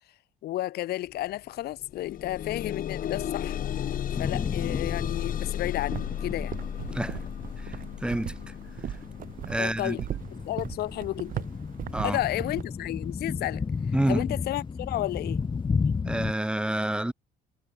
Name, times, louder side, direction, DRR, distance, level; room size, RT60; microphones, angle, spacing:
voice 1, 0.4-3.9 4.1-6.5 9.6-10.0 10.4-11.4 12.0-13.6 14.1-15.4, left 15 dB, 70° left, 1.2 m, -32 dB
sound 1, 1.1-1.2 1.6-12.6 13.4-13.5 14.0-14.1, left 10 dB, 55° left, 7.8 m, -35 dB
sound 2, 3.9-16.3, left 5 dB, 30° left, 3.5 m, -34 dB
sound 3, 5.7-12.6, right 10 dB, 55° right, 2.3 m, -39 dB
voice 2, 6.9-7.2 7.7-7.8 8.0-8.3 9.5-10.0 11.9-12.2 13.9-14.2 16.0-17.1, right 1 dB, 5° right, 3.2 m, -28 dB
cardioid pair, 110°, 17 cm